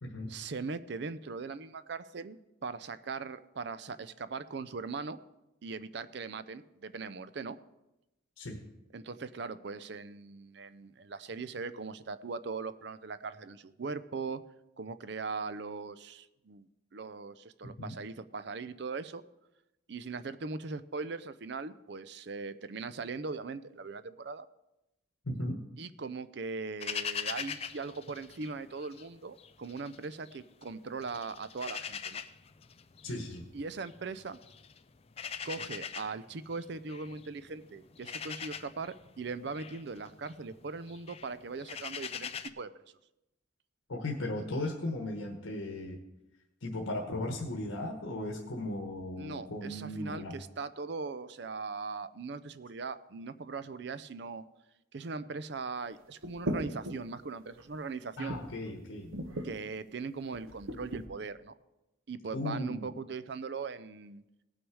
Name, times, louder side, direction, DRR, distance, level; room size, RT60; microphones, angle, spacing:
voice 1, 0.3-5.2 5.6-7.6 8.9-14.4 14.8-19.2 19.9-24.5 25.8-32.2 33.5-34.4 35.4-42.7 49.2-54.4 54.9-58.4 59.4-61.5 62.1-64.2, right 4 dB, 55° right, 14 dB, 0.5 m, -40 dB
voice 2, 17.6-17.9 25.3-25.6 33.0-33.4 43.9-46.0 46.6-50.3 58.2-59.1 62.3-62.8, left 1 dB, 90° left, 1 dB, 1.2 m, -36 dB
sound 1, 26.8-29.1 29.4-30.7 31.0-42.5, left 7 dB, 30° left, 0.4 m, -42 dB
sound 2, 56.2-57.1 57.5-57.7 58.3-58.7 59.1-59.5 60.3-61.0, equal, 85° right, 1.2 m, -36 dB
18.0 x 6.2 x 4.8 m, 0.96 s
head